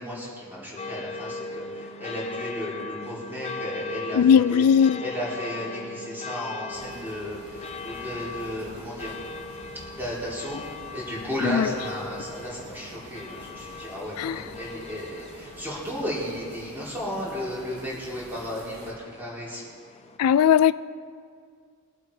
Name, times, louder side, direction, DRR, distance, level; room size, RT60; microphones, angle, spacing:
voice 1, 0.0-4.6 5.0-9.1 9.9-10.6 10.9-19.6, equal, 10° right, 3.8 m, -34 dB
sound 1, 0.8-20.2, left 3 dB, 30° left, 0.6 m, -39 dB
voice 2, 4.1-5.0 11.4-11.7 14.2-14.5 20.2-20.7, left 8 dB, 90° left, 0.3 m, -19 dB
sound 2, 6.7-18.9, right 1 dB, 85° right, 2.6 m, -47 dB
22.5 x 8.2 x 4.9 m
head